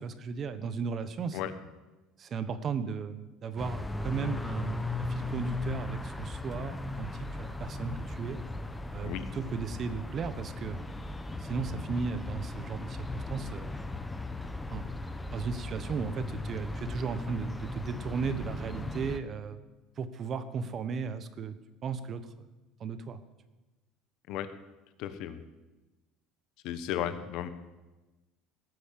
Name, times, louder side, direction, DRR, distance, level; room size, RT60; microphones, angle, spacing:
voice 1, 0.0-1.4 2.2-8.4 8.9-10.8 11.4-13.8 14.7-14.9 15.3-22.3 22.8-23.2, right 5 dB, 35° right, 12 dB, 1.0 m, -36 dB
sound 1, 3.6-19.2, left 2 dB, 10° left, 0.8 m, -37 dB
voice 2, 25.0-25.4 26.6-27.5, left 11 dB, 60° left, 11 dB, 1.2 m, -34 dB
18.0 x 8.4 x 7.5 m, 1.1 s
cardioid pair, 145°, 0 cm